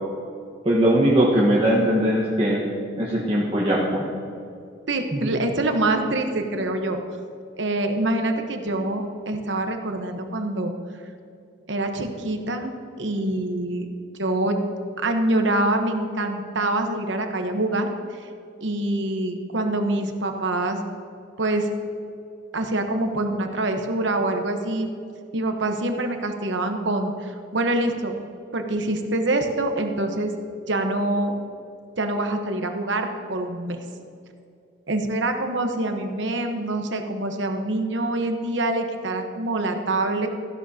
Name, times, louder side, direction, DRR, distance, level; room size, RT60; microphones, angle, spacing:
voice 1, 0.6-2.6 3.0-4.1 5.1-5.2, right 1 dB, 30° right, -6 dB, 1.2 m, -20 dB
voice 2, 4.9-7.0 7.6-10.7 11.7-12.7 13.0-13.9 14.2-14.6 15.0-17.9 18.2-18.3 18.6-20.8 21.4-21.7 22.5-24.9 25.3-28.1 28.5-30.3 30.7-31.3 32.0-33.8 34.9-40.3, right 2 dB, 70° right, 5 dB, 1.0 m, -25 dB
15.0 x 11.5 x 2.8 m, 2.6 s
head